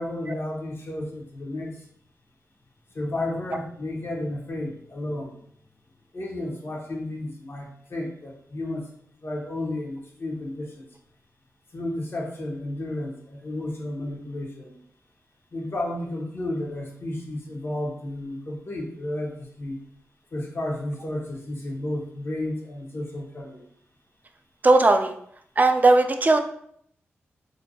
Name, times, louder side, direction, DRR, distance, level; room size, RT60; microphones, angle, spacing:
voice 1, 0.0-1.7 2.9-5.4 6.1-8.9 9.2-10.8 11.7-14.8 15.5-19.8 20.3-23.6, left 1 dB, 50° left, 0 dB, 0.7 m, -32 dB
voice 2, 24.6-25.1 25.6-26.4, right 2 dB, 35° right, 7 dB, 0.3 m, -17 dB
2.6 x 2.1 x 2.6 m, 0.67 s
supercardioid pair, 45°, 5 cm